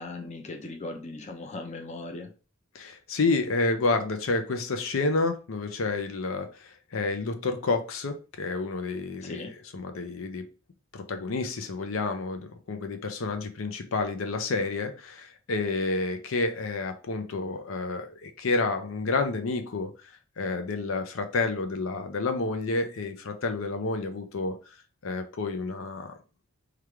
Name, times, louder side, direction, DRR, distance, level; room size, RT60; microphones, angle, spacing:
voice 1, 0.0-2.3 9.2-9.5, left 2 dB, 35° left, 3 dB, 0.6 m, -38 dB
voice 2, 2.7-9.4 9.7-10.5 10.9-19.9 20.4-24.6 25.0-26.2, left 3 dB, 75° left, 7 dB, 0.6 m, -29 dB
3.3 x 2.4 x 4.4 m, 0.34 s
head